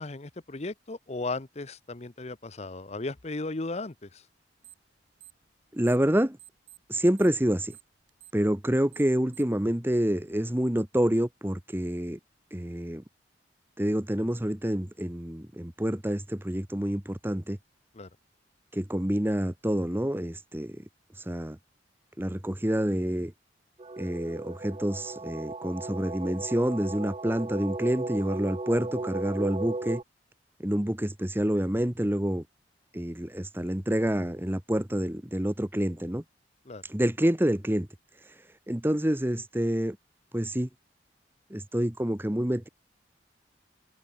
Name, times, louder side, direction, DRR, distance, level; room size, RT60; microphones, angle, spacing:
voice 1, 0.0-4.2 17.9-18.1 36.7-36.8, left 2 dB, 35° left, 0.9 m, -36 dB
sound 1, 4.6-4.9 5.2-6.1 6.4-9.6, right 13 dB, 80° right, 5.2 m, -52 dB
voice 2, 5.7-6.4 6.9-7.8 8.3-12.2 12.5-13.0 13.8-17.6 18.7-20.8 21.3-21.6 22.2-23.3 24.0-30.0 30.6-32.4 32.9-36.2 36.9-37.9 38.7-40.0 40.3-40.7 41.5-42.7, equal, 10° right, 1.2 m, -27 dB
sound 2, 23.8-30.0, right 2 dB, 30° right, 0.6 m, -36 dB
head